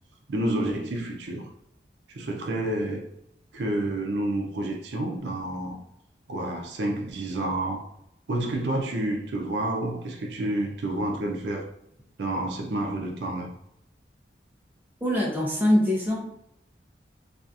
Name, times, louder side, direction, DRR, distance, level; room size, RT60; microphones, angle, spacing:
voice 1, 0.3-1.5 2.1-3.1 3.5-5.8 6.3-7.9 8.3-11.7 12.2-13.5, right 1 dB, 80° right, 0.5 m, -29 dB
voice 2, 15.0-16.3, left 1 dB, 10° right, 0.5 m, -23 dB
2.6 x 2.4 x 2.3 m
head